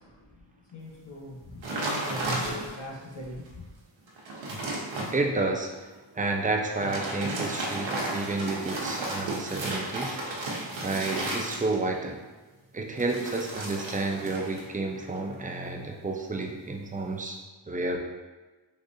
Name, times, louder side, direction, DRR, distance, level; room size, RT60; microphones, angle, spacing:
voice 1, 0.0-3.8, left 1 dB, 70° left, 1.1 m, -42 dB
sound 1, 1.6-2.9 3.5-3.6 4.0-5.1 6.7-12.0 13.0-14.7 14.9-15.3, right 2 dB, 85° right, 0.8 m, -33 dB
voice 2, 5.1-12.2 12.7-17.4 17.7-18.0, right 2 dB, 20° right, 0.4 m, -31 dB
3.8 x 2.5 x 2.6 m
wide cardioid pair, 70°, 44 cm